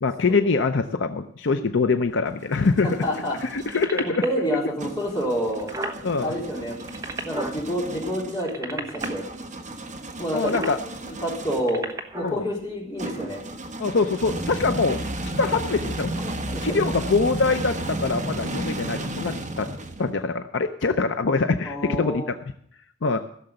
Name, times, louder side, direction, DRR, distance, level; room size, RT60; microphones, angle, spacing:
voice 1, 0.0-2.9 3.4-4.2 6.0-6.3 10.3-10.8 12.2-12.4 13.8-15.0 15.4-16.1 16.6-19.7 20.0-22.2 23.0-23.2, left 4 dB, 65° left, 8 dB, 0.6 m, -24 dB
sound 1, 2.1-3.9 4.8-11.8 13.0-20.3, right 1 dB, 35° right, 1.1 m, -33 dB
voice 2, 2.8-3.4 4.0-5.7 6.2-6.8 7.2-9.2 10.2-11.8 12.1-13.4 16.2-16.7 21.6-22.3 23.0-23.1, equal, 20° left, -4 dB, 4.0 m, -28 dB
sound 2, 3.5-4.4 5.1-5.2 5.4-6.0 6.7-7.6 8.3-9.1 10.3-10.8 11.5-12.4 13.1-13.2, right 2 dB, 15° right, 1.1 m, -33 dB
15.5 x 6.8 x 7.7 m, 0.67 s
head